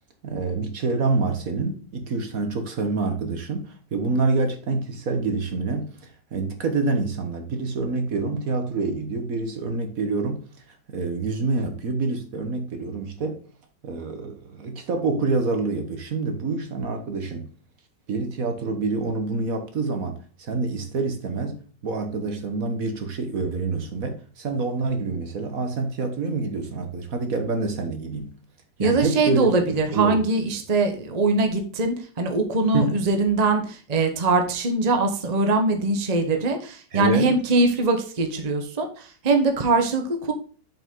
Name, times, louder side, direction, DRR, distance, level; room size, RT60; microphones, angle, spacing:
voice 1, 0.2-10.4 10.9-13.4 13.8-17.5 18.1-28.3 28.8-30.2 32.7-33.0 36.9-37.3, right 3 dB, 55° right, 1.5 m, -27 dB
voice 2, 28.8-40.3, right 3 dB, 25° right, 1.0 m, -22 dB
7.4 x 5.4 x 3.7 m
omnidirectional pair, 1.9 m